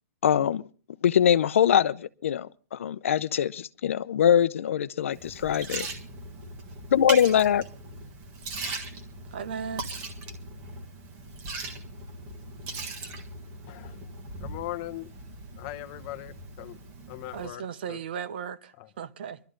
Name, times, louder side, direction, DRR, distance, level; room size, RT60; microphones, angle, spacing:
voice 1, 0.2-0.6 1.0-5.9 6.9-7.6, left 9 dB, 60° left, 0.7 m, -23 dB
Liquid, 5.1-17.5, right 3 dB, 20° right, 1.5 m, -39 dB
voice 2, 9.3-10.0 17.3-19.4, right 7 dB, 40° right, 0.8 m, -36 dB
voice 3, 13.7-14.1 14.4-15.1 15.6-16.8 17.1-18.0 18.8-18.9, left 16 dB, 25° left, 0.9 m, -39 dB
23.0 x 12.5 x 3.8 m
hypercardioid pair, 180°, 8 cm